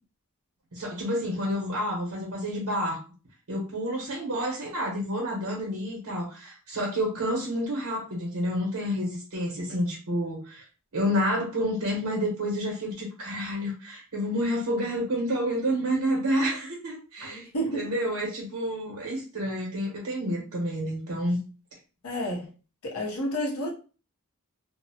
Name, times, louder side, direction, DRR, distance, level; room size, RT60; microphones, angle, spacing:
voice 1, 0.7-3.0 3.5-10.6 10.9-21.4, equal, 80° right, 0.9 m, -29 dB
voice 2, 17.2-17.8 22.0-22.5 22.8-23.7, equal, 75° left, 0.8 m, -30 dB
2.6 x 2.0 x 2.7 m
head